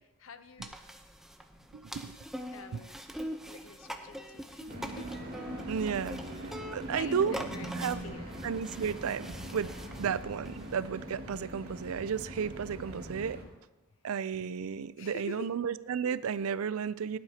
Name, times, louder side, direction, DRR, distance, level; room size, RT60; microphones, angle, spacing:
voice 1, 0.2-0.7 2.5-3.0 3.5-5.2 6.6-8.3 15.0-15.5, left 4 dB, 65° left, 10 dB, 0.7 m, -47 dB
sound 1, 0.6-10.7, equal, ahead, 0.7 m, -44 dB
voice 2, 1.7-2.2 2.7-2.8 4.6-4.7 5.7-6.2 6.7-7.5 7.7-8.0 8.4-9.7 10.0-13.4 14.0-17.2, right 7 dB, 75° right, 16 dB, 0.4 m, -33 dB
sound 2, 4.7-13.4, right 1 dB, 45° right, 2.1 m, -41 dB
18.0 x 11.0 x 2.8 m, 1.1 s
head